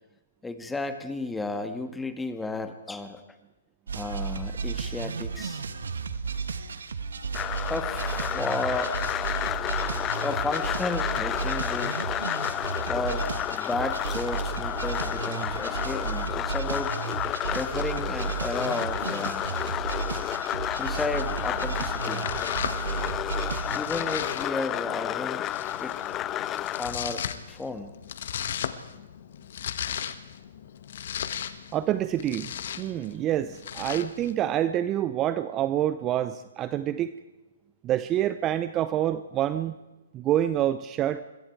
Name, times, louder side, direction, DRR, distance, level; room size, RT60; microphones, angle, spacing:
voice 1, 0.4-3.2 3.9-5.6 7.7-8.9 10.2-12.0 12.9-17.0 17.5-19.4 20.8-22.3 23.7-25.5 25.8-26.0 26.8-27.9, left 3 dB, 5° left, 9 dB, 1.9 m, -33 dB
sound 1, 3.9-23.8, right 5 dB, 80° right, 1.9 m, -33 dB
sound 2, 7.3-26.9, left 12 dB, 25° left, 0.6 m, -31 dB
Domestic sounds home sounds, 21.1-34.3, left 9 dB, 60° left, 1.5 m, -37 dB
voice 2, 31.7-32.5 32.8-37.1 37.8-39.7 40.1-41.2, right 11 dB, 25° right, 14 dB, 0.7 m, -27 dB
26.0 x 21.5 x 4.7 m, 1.1 s
hypercardioid pair, 135°, 0 cm